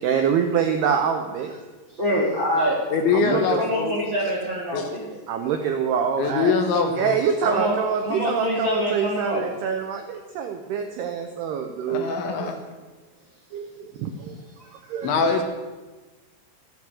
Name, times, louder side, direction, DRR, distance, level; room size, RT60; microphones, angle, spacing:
voice 1, 0.0-1.5 2.1-2.2 3.1-3.7 5.3-6.5 7.0-12.6 13.5-14.5 14.9-15.2, right 7 dB, 80° right, 5 dB, 2.4 m, -25 dB
voice 2, 1.9-2.8 3.3-5.1 7.4-7.8 8.0-9.4, equal, 35° right, -4 dB, 1.9 m, -25 dB
voice 3, 2.9-4.0 4.7-4.9 6.2-7.2 11.9-12.6 15.0-15.4, left 5 dB, 70° left, 4 dB, 3.4 m, -23 dB
14.5 x 9.2 x 7.6 m, 1.2 s
omnidirectional pair, 5.8 m